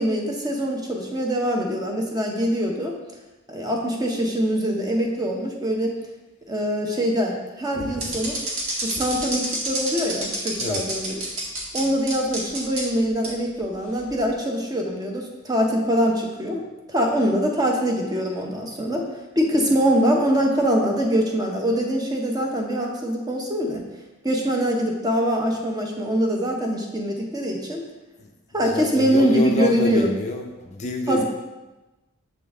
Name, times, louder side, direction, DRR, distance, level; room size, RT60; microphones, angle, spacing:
voice 1, 0.0-3.0 3.5-5.9 6.5-8.4 8.8-11.2 11.7-16.6 16.9-19.1 19.4-23.9 24.2-27.8 28.5-30.1 31.1-31.2, equal, 20° right, 1 dB, 0.7 m, -23 dB
voice 2, 7.7-8.1 10.6-10.9 28.2-28.3 28.6-31.2, left 3 dB, 35° left, 3 dB, 0.4 m, -28 dB
sound 1, 8.0-11.8 12.1-12.8 13.2-13.3 14.0-14.2, right 2 dB, 80° right, 1.5 m, -28 dB
7.0 x 3.7 x 3.7 m, 1.1 s
head